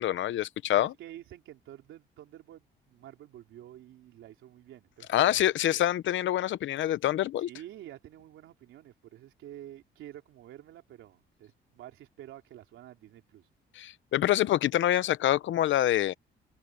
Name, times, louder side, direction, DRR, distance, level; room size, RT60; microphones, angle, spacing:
voice 1, 0.0-0.9 5.1-7.5 13.7-16.1, left 13 dB, 75° left, 0.8 m, -26 dB
voice 2, 0.7-5.4 5.7-5.8 7.5-13.5, right 12 dB, 85° right, 3.5 m, -49 dB
open air
cardioid pair, 90°, 20 cm